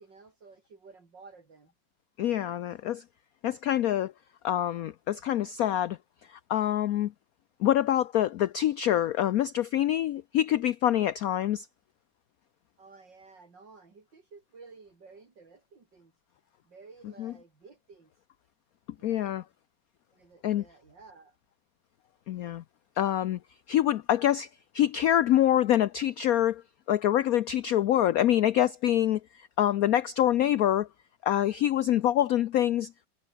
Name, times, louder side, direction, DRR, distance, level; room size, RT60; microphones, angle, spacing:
voice 1, 0.0-1.7 12.8-16.1 16.6-18.1 18.9-19.4 20.1-21.4, right 4 dB, 60° right, 4.2 m, -53 dB
voice 2, 2.2-3.0 3.4-4.1 4.4-6.0 6.3-7.1 7.6-11.7 17.2-17.3 19.0-19.4 20.4-20.6 22.3-22.6 23.0-23.4 23.7-24.5 24.7-26.6 26.9-30.9 31.2-32.9, left 12 dB, 80° left, 0.7 m, -25 dB
omnidirectional pair, 2.2 m